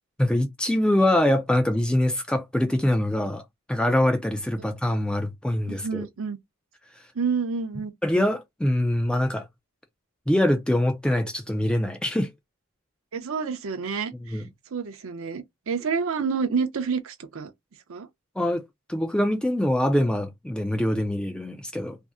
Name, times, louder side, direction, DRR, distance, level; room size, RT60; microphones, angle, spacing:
voice 1, 0.2-3.4 3.7-6.1 8.0-9.5 10.3-12.3 14.3-14.5 18.4-18.6 18.9-22.0, left 1 dB, 5° left, 0.3 m, -24 dB
voice 2, 5.7-6.4 7.2-7.9 13.1-14.4 14.7-17.5 17.9-18.1, right 5 dB, 65° right, 0.5 m, -29 dB
2.6 x 2.0 x 3.4 m
head